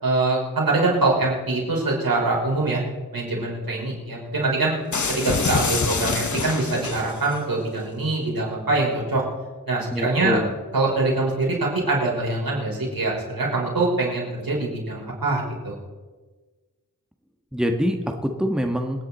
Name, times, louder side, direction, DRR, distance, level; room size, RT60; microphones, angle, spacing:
voice 1, 0.0-2.8 3.1-4.7 5.2-9.2 9.7-10.4 10.7-15.8, right 2 dB, 80° right, -3 dB, 5.4 m, -24 dB
sound 1, 4.9-7.4, left 4 dB, 55° left, 1.2 m, -26 dB
voice 2, 9.9-10.5 17.5-19.1, equal, ahead, 4 dB, 1.4 m, -25 dB
26.5 x 10.0 x 4.3 m, 1.3 s
wide cardioid pair, 80°, 35 cm